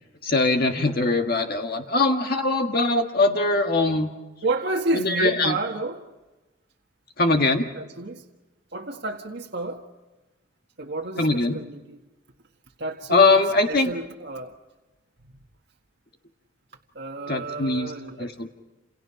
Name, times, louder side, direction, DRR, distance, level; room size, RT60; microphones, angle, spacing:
voice 1, 0.2-4.1 4.9-5.6 7.2-7.7 11.2-11.6 13.1-13.9 17.3-17.9 18.2-18.5, left 3 dB, 45° left, 4 dB, 1.6 m, -21 dB
voice 2, 4.4-6.0 7.8-8.2 8.7-9.8 10.8-12.0 12.8-14.5 17.0-18.3, right 2 dB, 55° right, 1 dB, 1.7 m, -30 dB
29.5 x 28.5 x 5.9 m, 1.1 s
head